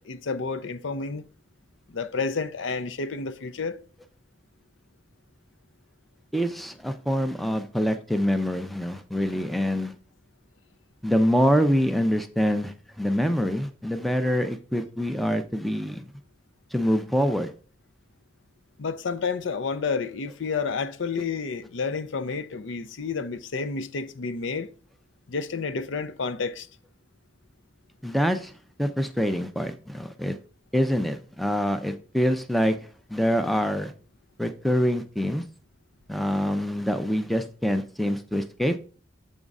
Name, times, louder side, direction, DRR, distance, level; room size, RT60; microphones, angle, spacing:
voice 1, 0.1-1.3 1.9-3.8 18.8-24.7 25.3-26.7, left 4 dB, 70° left, 0.5 m, -30 dB
voice 2, 6.3-9.9 11.0-16.1 16.7-17.5 28.0-28.5 28.8-30.4 30.7-32.8 33.1-33.9 34.4-35.4 36.1-38.8, equal, ahead, 0.4 m, -25 dB
7.1 x 3.7 x 5.3 m
head